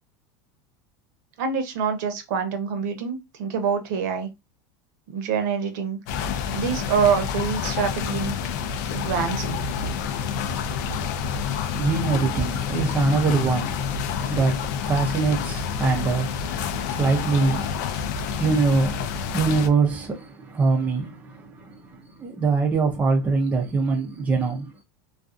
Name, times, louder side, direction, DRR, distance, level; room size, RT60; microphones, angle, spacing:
voice 1, 1.4-4.3 5.1-6.0 6.5-8.3 8.9-9.7, right 6 dB, 65° right, 0.7 m, -26 dB
sound 1, 6.1-19.7, left 7 dB, 65° left, 0.4 m, -28 dB
voice 2, 11.4-24.7, right 4 dB, 15° right, 0.4 m, -24 dB
2.5 x 2.3 x 2.4 m
supercardioid pair, 155°, 10 cm